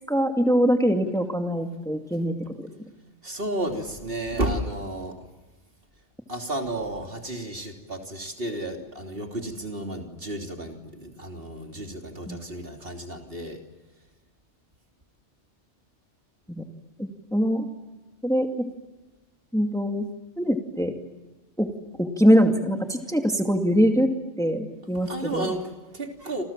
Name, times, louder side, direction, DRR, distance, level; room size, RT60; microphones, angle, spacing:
voice 1, 0.1-2.7 12.3-12.4 16.5-16.6 17.0-17.7 18.2-18.7 19.5-20.1 20.4-20.9 21.6-21.7 22.0-24.1 24.4-25.5, equal, 5° left, 4 dB, 2.4 m, -23 dB
voice 2, 3.2-5.2 6.3-13.6 25.1-26.4, right 1 dB, 50° right, 3 dB, 3.4 m, -32 dB
28.5 x 28.0 x 7.5 m, 1.2 s
omnidirectional pair, 1.2 m